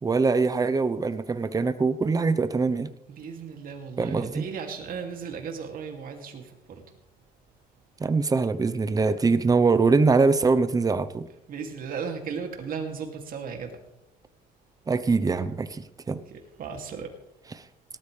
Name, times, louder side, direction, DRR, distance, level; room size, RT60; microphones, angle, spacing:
voice 1, 0.0-2.9 4.0-4.5 8.0-11.3 14.9-16.2 17.5-17.6, right 4 dB, 20° right, 12 dB, 0.9 m, -23 dB
voice 2, 3.1-6.8 11.5-13.7 16.3-17.1, right 6 dB, 55° right, 3 dB, 2.7 m, -36 dB
18.0 x 12.5 x 3.4 m, 0.84 s
cardioid pair, 110°, 17 cm